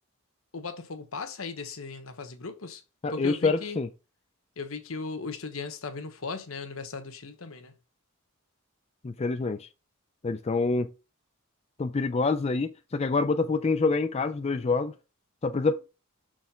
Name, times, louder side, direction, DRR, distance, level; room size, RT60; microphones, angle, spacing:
voice 1, 0.5-2.8 3.1-3.8 4.6-7.7, left 4 dB, 75° left, 1.1 m, -37 dB
voice 2, 3.0-3.9 9.0-9.7 10.2-10.9 11.8-14.9 15.4-15.8, left 3 dB, 30° left, 0.4 m, -26 dB
6.4 x 3.4 x 5.6 m
head